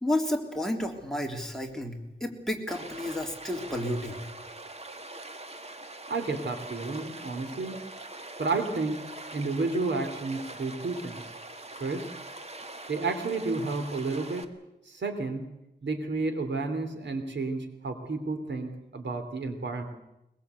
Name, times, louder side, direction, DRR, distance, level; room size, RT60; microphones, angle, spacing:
voice 1, 0.0-4.2, left 1 dB, ahead, 1 dB, 3.5 m, -31 dB
Stream, 2.7-14.4, right 2 dB, 35° right, 1.9 m, -43 dB
voice 2, 6.1-7.8 8.4-9.0 9.3-11.2 11.8-12.1 12.9-14.5 14.9-15.5 15.8-19.8, right 3 dB, 85° right, 7 dB, 3.2 m, -31 dB
22.5 x 22.0 x 8.3 m, 0.89 s
wide cardioid pair, 105°, 18 cm